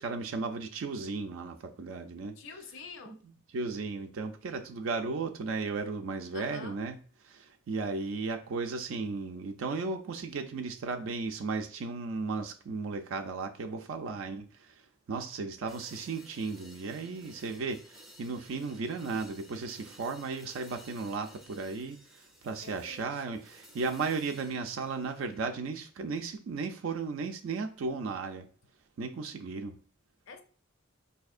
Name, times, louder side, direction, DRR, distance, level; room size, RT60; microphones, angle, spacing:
voice 1, 0.0-2.4 3.5-7.0 7.3-14.7 15.1-22.0 22.4-28.5 29.0-29.7, right 4 dB, 70° right, 0.4 m, -35 dB
voice 2, 2.4-3.2 6.3-6.8 22.6-23.4 30.3-30.4, left 4 dB, 65° left, 0.5 m, -47 dB
sound 1, 15.7-25.5, equal, ahead, 0.4 m, -56 dB
4.2 x 2.7 x 2.4 m
head